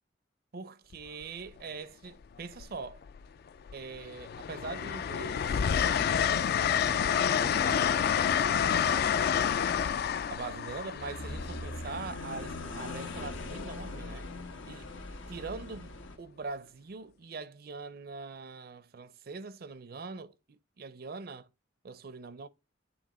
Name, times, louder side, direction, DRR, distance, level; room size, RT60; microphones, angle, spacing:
voice 1, 0.5-3.0 3.7-9.3 10.3-14.3 14.7-14.9 15.3-15.9 16.2-21.5 21.8-22.5, right 4 dB, 50° right, 0.5 m, -43 dB
Train, 0.9-1.2 2.5-3.3 3.7-12.4 14.0-14.3, left 8 dB, 55° left, 0.3 m, -29 dB
sound 1, 11.0-16.2, left 2 dB, 90° left, 1.1 m, -41 dB
8.7 x 3.3 x 4.1 m
head